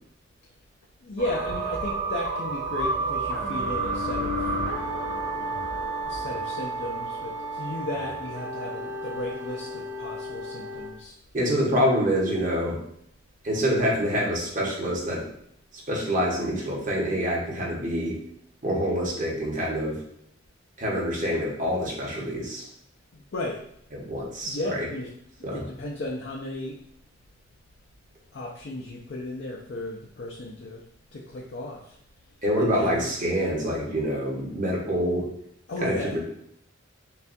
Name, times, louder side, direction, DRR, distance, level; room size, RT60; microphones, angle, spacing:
voice 1, 1.0-4.5 6.0-11.2 23.1-23.6 24.5-25.1 25.5-26.8 28.3-30.8 31.1-32.0 32.6-33.1 35.7-36.2, left 2 dB, 65° left, 0 dB, 0.5 m, -35 dB
sound 1, 1.2-10.9, right 2 dB, 85° right, 1.1 m, -31 dB
voice 2, 11.3-12.8 13.4-15.3 15.9-18.2 18.6-20.0 20.8-22.7 23.9-24.8 25.4-25.6 32.4-35.2 35.8-36.2, equal, 45° right, -4 dB, 1.3 m, -26 dB
6.7 x 2.4 x 2.6 m, 0.72 s
head